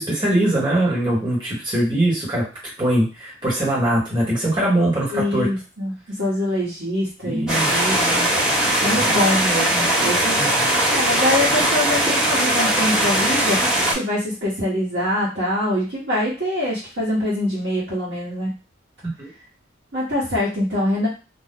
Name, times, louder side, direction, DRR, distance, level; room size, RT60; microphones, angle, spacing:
voice 1, 0.0-2.5 2.8-5.5 7.2-7.7 9.0-9.1 10.4-10.7 19.0-19.3, right 1 dB, 25° right, -6 dB, 1.2 m, -21 dB
voice 2, 5.1-8.3 8.8-10.4 10.8-18.5 19.9-21.1, left 1 dB, 60° right, -9 dB, 1.2 m, -24 dB
sound 1, 7.5-13.9, right 1 dB, 5° right, 1.0 m, -20 dB
2.6 x 2.2 x 3.5 m, 0.31 s
head